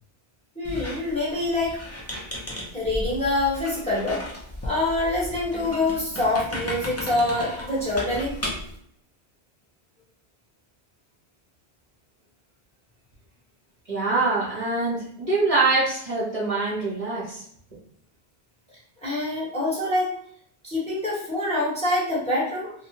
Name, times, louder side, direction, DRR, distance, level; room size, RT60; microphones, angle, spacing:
voice 1, 0.5-1.8 2.7-4.2 4.6-8.3 19.0-20.1 20.6-22.7, left 2 dB, 5° left, -8 dB, 1.0 m, -25 dB
Squeak, 0.6-8.8, left 1 dB, 25° left, 0.4 m, -35 dB
voice 2, 13.9-17.4, right 3 dB, 35° right, -8 dB, 0.9 m, -24 dB
2.9 x 2.1 x 2.8 m, 0.64 s
omnidirectional pair, 1.1 m